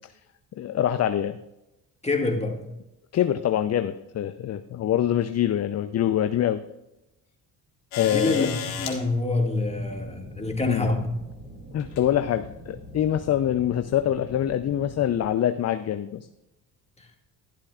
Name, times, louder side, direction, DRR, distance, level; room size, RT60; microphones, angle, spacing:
voice 1, 0.6-1.4 3.1-6.6 8.0-8.5 10.7-10.9 11.7-16.3, left 11 dB, 35° left, 0.5 m, -25 dB
voice 2, 2.0-2.6 8.0-11.2, left 2 dB, 15° left, 2.0 m, -26 dB
sound 1, 7.9-9.0 10.4-10.5 11.8-12.1 13.0-13.1, left 7 dB, 75° left, 1.7 m, -33 dB
sound 2, 9.6-15.3, right 1 dB, 25° right, 4.0 m, -43 dB
12.0 x 11.5 x 2.4 m
hypercardioid pair, 55°, 48 cm